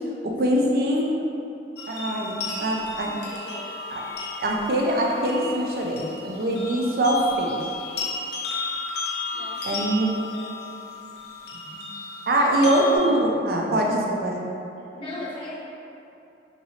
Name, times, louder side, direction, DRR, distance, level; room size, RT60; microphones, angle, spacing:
voice 1, 0.2-1.1 1.9-3.1 3.9-4.0 4.4-7.5 9.6-10.1 11.7-11.8 12.3-14.4, right 1 dB, 55° right, -1 dB, 0.4 m, -23 dB
sound 1, 1.8-13.0, left 3 dB, 60° left, 0.5 m, -34 dB
voice 2, 3.0-3.6 6.6-6.8 9.3-10.1 10.3-10.5 12.3-12.4 14.9-15.6, left 1 dB, 30° left, -9 dB, 0.8 m, -39 dB
3.0 x 2.8 x 2.8 m, 2.8 s
head